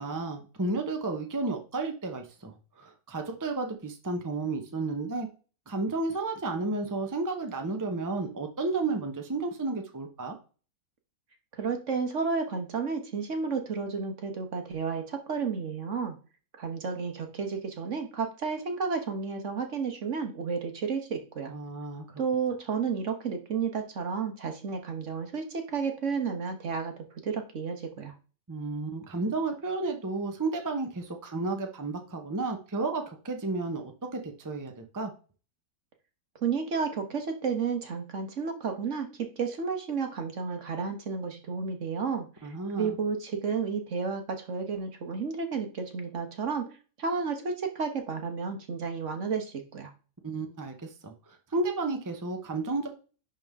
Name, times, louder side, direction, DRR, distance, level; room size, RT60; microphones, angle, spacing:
voice 1, 0.0-5.3 5.7-10.4 21.5-22.0 28.5-35.1 42.4-43.0 50.2-51.1 51.5-52.9, right 3 dB, 15° right, 4 dB, 0.8 m, -32 dB
voice 2, 11.6-16.1 16.6-21.5 22.2-28.1 36.4-39.1 39.4-46.7 47.0-49.9, right 5 dB, 55° right, 5 dB, 1.5 m, -32 dB
11.0 x 3.7 x 3.6 m, 0.36 s
omnidirectional pair, 1.6 m